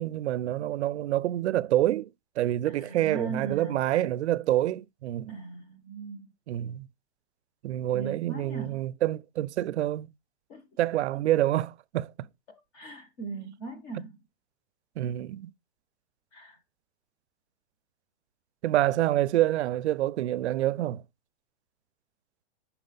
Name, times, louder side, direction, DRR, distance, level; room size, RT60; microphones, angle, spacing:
voice 1, 0.0-2.1 2.4-5.3 6.5-6.9 7.6-10.1 10.8-12.3 15.0-15.5 18.6-21.0, right 13 dB, 75° right, 0.5 m, -27 dB
voice 2, 2.7-3.8 5.3-6.3 7.9-8.8 10.5-10.8 11.1-11.2 12.7-14.2 16.3-16.6, right 4 dB, 15° left, 0.6 m, -39 dB
5.9 x 4.3 x 3.9 m
hypercardioid pair, 170°, 34 cm